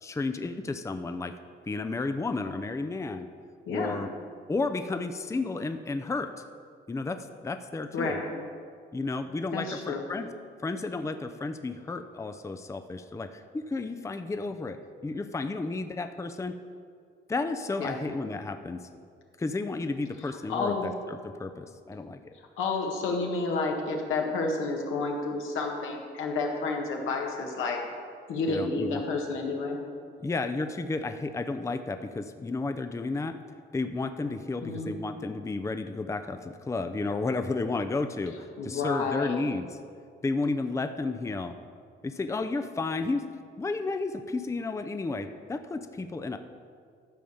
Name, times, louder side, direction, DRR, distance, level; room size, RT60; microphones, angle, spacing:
voice 1, 0.0-1.3 1.7-3.3 3.7-4.1 4.5-6.3 6.9-8.2 8.9-10.3 10.6-14.8 15.0-16.6 17.3-18.9 19.4-22.2 28.5-29.0 30.2-33.4 33.7-39.8 40.2-41.6 42.0-43.3 43.6-46.4, left 3 dB, 15° left, 8 dB, 0.5 m, -32 dB
voice 2, 3.7-4.0 7.9-8.3 9.5-10.0 17.8-18.0 20.2-20.9 22.6-27.8 28.3-29.8 34.6-34.9 38.6-39.4, left 3 dB, 80° left, 1 dB, 1.7 m, -30 dB
12.5 x 5.0 x 7.1 m, 2.2 s
cardioid pair, 90°, 20 cm